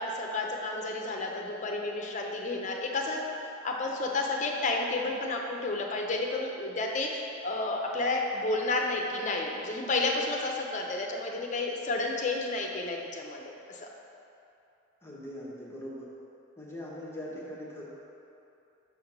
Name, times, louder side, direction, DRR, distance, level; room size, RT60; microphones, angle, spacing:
voice 1, 0.0-3.2 3.6-13.9, left 2 dB, 40° left, 1 dB, 0.7 m, -31 dB
voice 2, 15.0-16.1 16.6-17.9, equal, 15° left, -6 dB, 1.0 m, -41 dB
6.4 x 3.5 x 5.8 m, 2.8 s
head